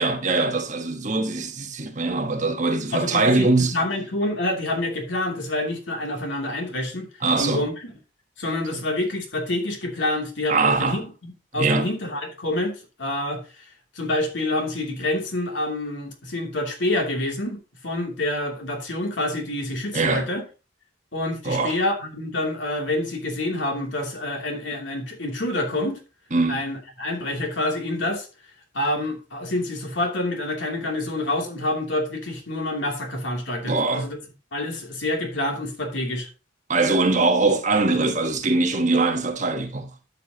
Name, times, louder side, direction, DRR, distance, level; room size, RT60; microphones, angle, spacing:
voice 1, 0.0-3.8 7.2-7.6 8.7-8.8 10.5-11.0 11.5-11.9 19.9-20.3 21.4-21.8 26.3-26.6 33.6-34.1 36.7-39.9, right 3 dB, 40° right, 1.3 m, -22 dB
voice 2, 2.9-7.1 7.4-7.9 8.4-20.4 21.1-26.0 26.5-28.3 28.7-34.2 34.5-36.3, left 1 dB, 70° left, 2.8 m, -27 dB
13.0 x 6.8 x 2.9 m
head